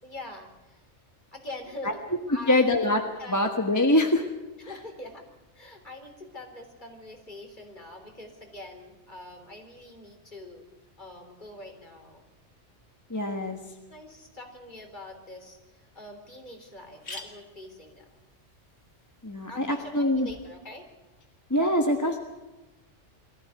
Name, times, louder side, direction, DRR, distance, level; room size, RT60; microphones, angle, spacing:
voice 1, 0.0-0.8 1.3-2.0 2.3-2.9 3.2-3.5 4.7-5.2 5.5-10.6 11.0-12.2 13.5-13.6 13.9-18.1 19.5-20.9, left 1 dB, 40° left, 3 dB, 3.9 m, -44 dB
voice 2, 2.5-3.0 3.3-4.2 13.1-13.6 19.2-20.3 21.5-22.2, left 1 dB, 15° left, 3 dB, 1.4 m, -23 dB
sound 1, 15.5-15.6 16.0-16.1 16.3-16.4 16.8-20.5, left 2 dB, 85° left, 3.1 m, -48 dB
22.5 x 15.0 x 9.5 m, 1.1 s
omnidirectional pair, 1.2 m